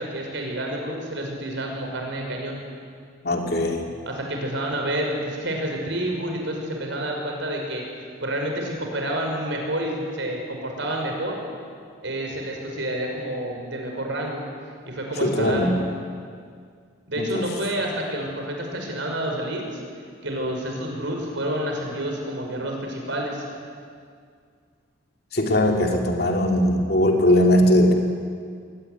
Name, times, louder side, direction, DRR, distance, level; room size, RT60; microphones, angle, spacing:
voice 1, 0.0-2.6 4.1-7.8 8.2-11.4 12.0-14.4 14.9-15.8 17.1-19.8 20.2-23.4, right 1 dB, 65° right, 1 dB, 5.6 m, -29 dB
voice 2, 3.2-3.8 15.2-15.7 17.2-17.5 25.3-27.9, left 1 dB, 50° left, 2 dB, 2.9 m, -20 dB
22.0 x 18.5 x 9.7 m, 2.1 s
head